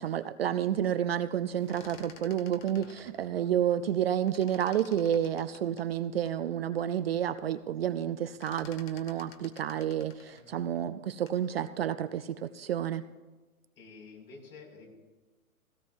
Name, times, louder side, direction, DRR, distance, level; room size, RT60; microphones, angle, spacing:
voice 1, 0.0-13.0, right 10 dB, 45° right, 11 dB, 0.4 m, -30 dB
sound 1, 1.5-4.0 4.3-6.4 6.9-7.0 7.3-7.7 7.9-11.5, left 6 dB, 35° left, 1.1 m, -53 dB
voice 2, 2.7-3.1 10.3-10.8 13.8-14.9, left 4 dB, 70° left, -1 dB, 5.8 m, -51 dB
18.0 x 17.0 x 2.6 m, 1.2 s
hypercardioid pair, 140°, 44 cm